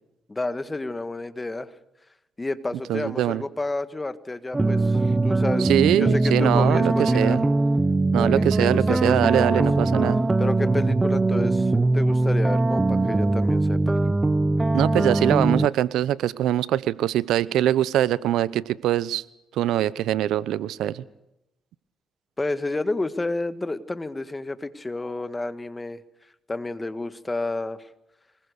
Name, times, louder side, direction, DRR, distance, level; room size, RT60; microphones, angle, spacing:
voice 1, 0.3-1.7 2.4-7.4 8.2-9.6 10.4-14.0 22.4-26.0 26.5-27.9, left 2 dB, 20° left, 12 dB, 1.7 m, -30 dB
voice 2, 2.9-3.4 5.6-7.5 8.1-10.2 14.7-19.2 19.5-21.0, right 12 dB, 85° right, 19 dB, 0.8 m, -23 dB
sound 1, 4.5-15.7, right 2 dB, 20° right, 0.7 m, -21 dB
25.5 x 21.0 x 6.7 m, 0.86 s
cardioid pair, 90°, 0 cm